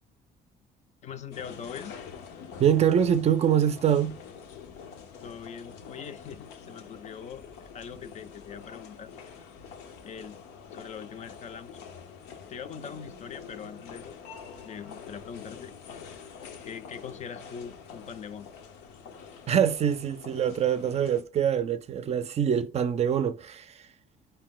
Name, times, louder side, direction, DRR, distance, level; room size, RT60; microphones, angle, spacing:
voice 1, 1.0-2.0 5.2-9.1 10.0-10.4 10.7-11.8 12.5-14.2 14.7-15.7 16.6-18.5, left 7 dB, 45° left, 0.5 m, -42 dB
sound 1, 1.3-21.2, left 6 dB, 85° left, 0.7 m, -46 dB
voice 2, 2.6-4.2 19.5-23.9, right 9 dB, 40° right, 0.4 m, -24 dB
4.4 x 2.7 x 3.7 m
cardioid pair, 110°, 17 cm